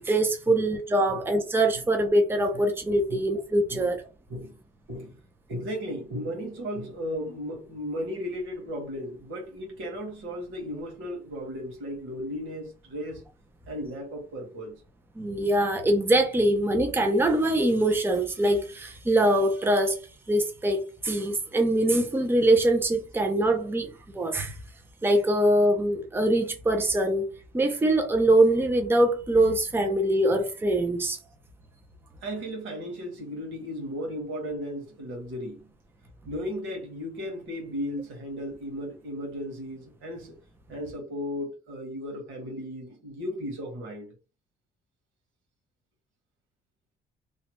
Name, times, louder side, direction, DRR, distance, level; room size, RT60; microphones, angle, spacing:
voice 1, 0.1-4.0 15.2-20.0 20.3-23.9 24.1-24.5 25.0-27.3 27.5-31.2, right 1 dB, 10° right, 0.6 m, -23 dB
voice 2, 5.5-13.2 13.7-14.8 32.2-35.6 36.2-40.3 40.7-44.1, equal, 90° right, 1.6 m, -35 dB
3.1 x 2.3 x 3.0 m
cardioid pair, 120°, 20 cm